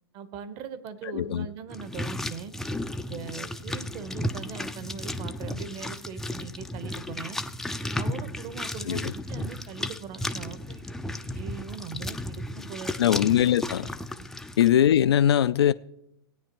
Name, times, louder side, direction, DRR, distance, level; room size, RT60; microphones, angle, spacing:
voice 1, 0.1-2.5 3.0-7.4 7.9-10.9 11.2-12.9 14.2-14.3, right 7 dB, 35° right, 1.0 m, -40 dB
voice 2, 1.0-1.5 8.9-9.1 13.0-13.9 14.6-15.7, left 10 dB, 75° left, 0.4 m, -21 dB
sound 1, 1.7-14.7, left 1 dB, 5° left, 0.4 m, -34 dB
17.5 x 9.2 x 3.0 m
hypercardioid pair, 120°, 13 cm